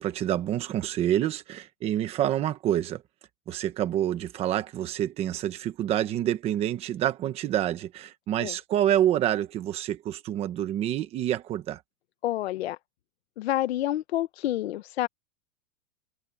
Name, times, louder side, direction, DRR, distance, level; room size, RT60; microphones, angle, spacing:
voice 1, 0.0-3.0 3.5-11.8, right 11 dB, 15° right, 1.1 m, -27 dB
voice 2, 12.2-12.8 13.4-15.1, left 14 dB, 50° left, 0.9 m, -28 dB
supercardioid pair, 175°, 39 cm